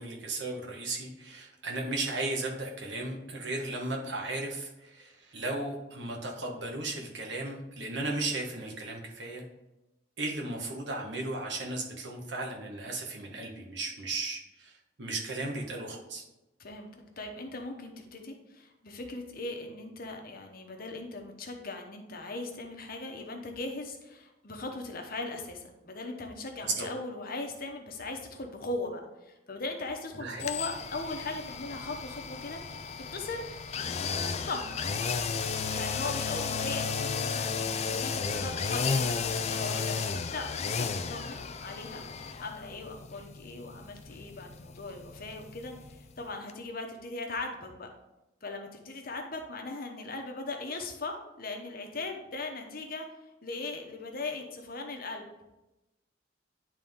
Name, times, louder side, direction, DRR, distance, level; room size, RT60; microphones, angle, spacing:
voice 1, 0.0-9.4 10.2-16.2 26.6-26.9 30.2-30.4, right 2 dB, 65° right, 0 dB, 1.4 m, -35 dB
voice 2, 16.6-32.6 33.0-33.4 34.3-34.8 35.7-40.0 40.3-42.0 42.4-47.9 48.4-53.1 53.4-55.5, left 2 dB, 50° left, 3 dB, 1.0 m, -39 dB
sound 1, 30.4-46.2 46.5-46.6, left 5 dB, 35° left, 0.4 m, -34 dB
10.0 x 3.7 x 3.6 m, 0.98 s
head